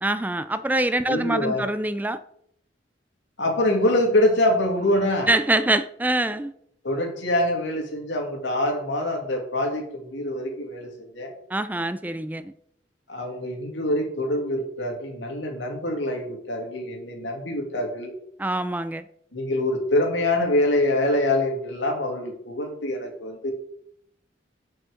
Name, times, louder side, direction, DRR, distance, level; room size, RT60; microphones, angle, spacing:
voice 1, 0.0-2.2 5.3-6.5 11.5-12.5 18.4-19.0, right 1 dB, 10° right, 12 dB, 0.4 m, -24 dB
voice 2, 1.0-1.6 3.4-5.3 6.8-11.3 13.1-18.1 19.3-23.5, left 1 dB, 85° left, 2 dB, 2.5 m, -25 dB
7.2 x 6.2 x 6.5 m, 0.70 s
head